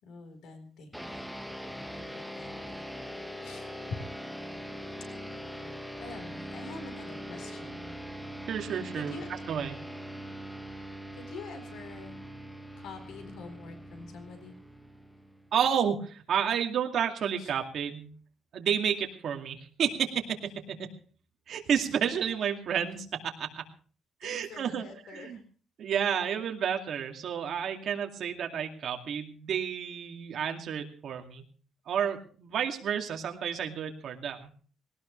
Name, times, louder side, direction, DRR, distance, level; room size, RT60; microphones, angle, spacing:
voice 1, 0.0-1.3 1.8-2.8 3.4-3.7 6.0-7.9 8.9-9.3 11.1-12.2 12.8-14.5 17.4-17.5 24.2-25.4, left 4 dB, 70° left, 7 dB, 4.2 m, -46 dB
sound 1, 0.9-15.7, equal, ahead, 1.1 m, -42 dB
voice 2, 8.5-9.8 15.5-18.1 18.5-20.9 21.5-23.6 24.2-25.4 25.8-31.4 31.9-34.5, right 8 dB, 50° right, 3 dB, 2.4 m, -31 dB
19.5 x 18.5 x 3.3 m, 0.42 s
cardioid pair, 175°, 0 cm